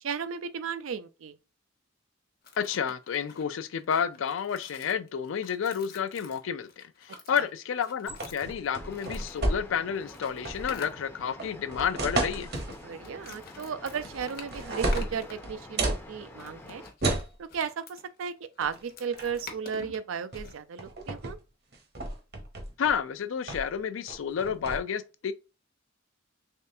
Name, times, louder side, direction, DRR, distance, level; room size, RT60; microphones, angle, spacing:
voice 1, 0.0-1.3 7.4-7.5 12.8-16.8 17.4-21.4, right 6 dB, 85° right, 0.4 m, -35 dB
sound 1, 2.4-9.4 9.9-11.1 12.3-15.4 16.4-20.6, left 4 dB, 45° left, 0.7 m, -48 dB
voice 2, 2.6-12.5 22.8-25.3, left 7 dB, 75° left, 0.4 m, -30 dB
sound 2, 8.1-9.9 10.2-10.8 11.4-12.8 13.9-14.2 14.5-16.0 17.0-17.3 18.6-18.8 19.1-19.5 20.3-20.5 20.8-21.3 21.7-23.0 23.5-23.8 24.1-24.8, right 2 dB, 50° right, 0.8 m, -32 dB
sound 3, 8.7-16.9, left 1 dB, 10° left, 0.5 m, -48 dB
3.5 x 3.3 x 2.7 m
head